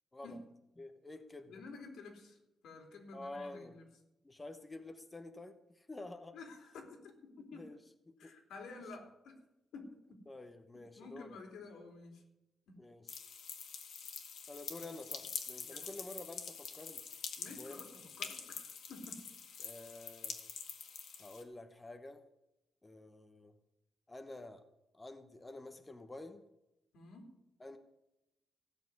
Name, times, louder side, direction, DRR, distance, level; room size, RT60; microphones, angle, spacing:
voice 1, 0.8-1.6 3.1-3.7 4.2-6.4 7.5-7.8 8.1-8.3 10.3-11.4 12.8-13.1 14.5-17.0 17.4-17.8 19.6-20.4 21.2-22.2 22.8-23.5 24.1-24.6 24.9-26.4 27.6-27.8, left 2 dB, 15° left, 8 dB, 0.9 m, -49 dB
voice 2, 1.5-2.4 2.6-3.8 6.3-7.7 8.2-9.4 9.7-10.3 11.0-12.2 12.7-12.8 14.8-14.9 15.6-15.9 17.4-19.6 26.9-27.3, left 3 dB, 90° left, 3 dB, 3.5 m, -51 dB
sound 1, 13.1-21.4, left 6 dB, 65° left, 1.8 m, -46 dB
16.0 x 6.7 x 9.4 m, 0.92 s
wide cardioid pair, 175°, 0 cm